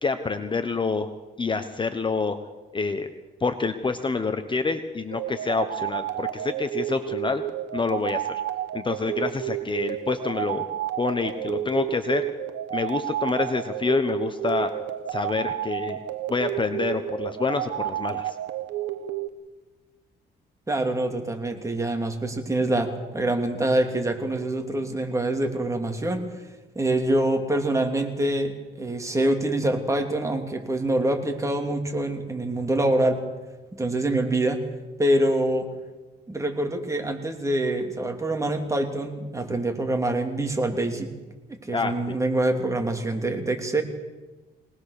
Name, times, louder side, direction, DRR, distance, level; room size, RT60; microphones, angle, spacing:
voice 1, 0.0-1.1 1.4-2.4 2.7-3.1 3.4-7.4 7.7-8.4 8.7-10.7 11.0-12.2 12.7-14.7 15.1-16.0 16.3-18.4 41.7-42.0, left 4 dB, 25° left, 9 dB, 1.2 m, -27 dB
sound 1, 5.1-19.3, right 12 dB, 90° right, 1.2 m, -31 dB
voice 2, 20.7-26.2 26.7-33.2 33.7-34.6 35.0-35.7 36.3-41.1 41.7-43.8, right 1 dB, 15° right, 4 dB, 3.1 m, -25 dB
23.0 x 19.5 x 6.7 m, 1.2 s
cardioid pair, 105°, 19 cm